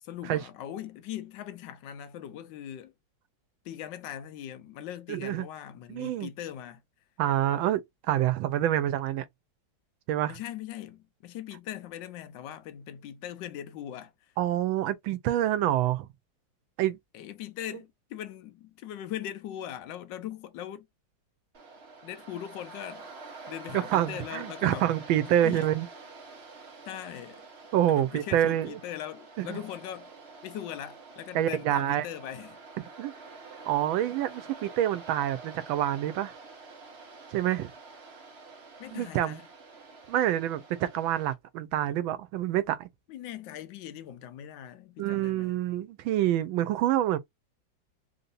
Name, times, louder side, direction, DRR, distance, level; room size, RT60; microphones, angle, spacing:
voice 1, 0.0-2.9 3.6-6.8 10.3-14.4 17.1-20.9 22.0-23.1 23.5-24.9 25.4-25.7 26.9-27.4 27.9-30.1 30.4-32.6 38.8-39.5 43.1-45.6, left 11 dB, 75° left, 1.2 m, -40 dB
voice 2, 5.1-5.5 5.9-6.3 7.2-9.3 10.1-10.4 14.4-16.1 16.8-17.0 23.7-25.9 27.7-28.7 29.4-29.6 31.3-32.0 33.0-33.1 33.7-36.3 37.3-37.7 38.9-39.4 40.1-42.9 45.0-47.2, right 12 dB, 90° right, 1.4 m, -27 dB
Waves surf, 21.5-41.3, right 4 dB, 40° right, 1.0 m, -48 dB
3.6 x 2.7 x 2.5 m
omnidirectional pair, 2.1 m